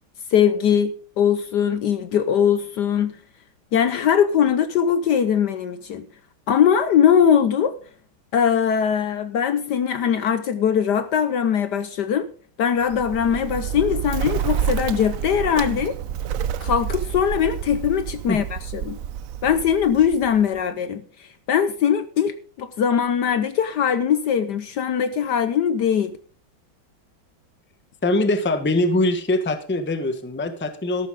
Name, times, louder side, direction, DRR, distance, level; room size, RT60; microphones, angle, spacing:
voice 1, 0.3-3.2 3.7-6.1 6.5-7.8 8.3-12.3 12.6-16.0 16.6-19.0 19.4-26.2, left 8 dB, 65° left, 1.2 m, -21 dB
Bird, 12.8-20.6, right 9 dB, 75° right, 0.7 m, -29 dB
voice 2, 28.0-31.1, left 2 dB, 10° left, 0.8 m, -22 dB
13.5 x 11.5 x 3.6 m
omnidirectional pair, 2.2 m